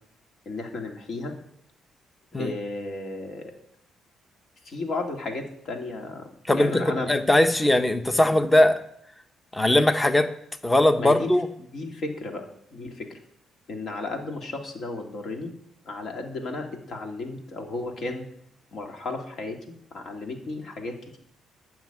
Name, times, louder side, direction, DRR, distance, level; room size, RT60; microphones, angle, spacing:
voice 1, 0.5-1.3 2.4-3.5 4.6-7.2 8.2-8.4 11.0-11.3 11.6-12.5 12.7-13.2 13.7-15.5 15.8-18.3 18.7-21.2, left 2 dB, 60° left, 2 dB, 2.7 m, -34 dB
voice 2, 6.5-8.8 9.5-10.3 10.6-11.5, left 1 dB, 15° left, 9 dB, 0.9 m, -20 dB
11.5 x 6.1 x 9.3 m, 0.72 s
cardioid pair, 90°, 0 cm